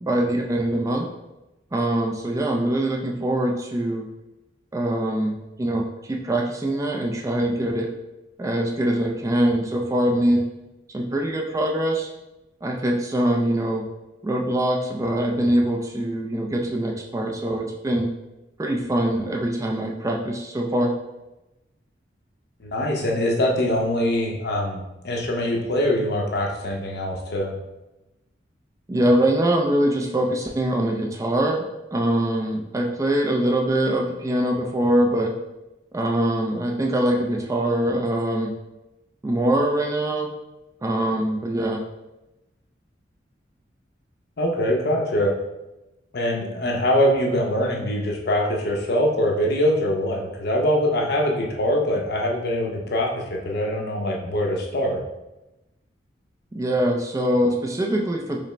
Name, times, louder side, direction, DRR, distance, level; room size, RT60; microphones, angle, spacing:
voice 1, 0.0-1.1 1.7-4.1 4.7-7.9 8.4-10.5 10.9-12.1 12.6-13.9 14.2-18.1 18.6-20.9 28.9-31.7 31.9-35.3 35.9-38.5 39.2-40.3 40.8-41.8 56.5-58.4, right 1 dB, 20° right, 1 dB, 0.3 m, -23 dB
voice 2, 22.6-27.6 44.4-45.3 46.1-55.0, left 1 dB, 60° left, 0 dB, 0.7 m, -23 dB
5.1 x 2.0 x 3.2 m, 0.98 s
head